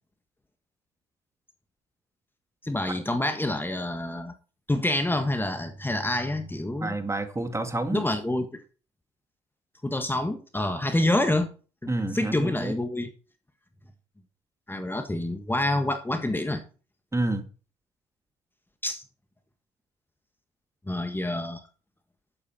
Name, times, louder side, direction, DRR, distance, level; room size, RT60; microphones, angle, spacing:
voice 1, 2.6-4.3 4.7-6.9 7.9-8.6 9.8-11.5 12.1-13.1 14.7-16.6 18.8-19.0 20.9-21.6, left 1 dB, 15° left, 1.6 m, -27 dB
voice 2, 6.8-8.0 11.9-12.7 17.1-17.5, right 2 dB, 20° right, 2.2 m, -29 dB
12.0 x 8.7 x 4.3 m
hypercardioid pair, 55°, 16 cm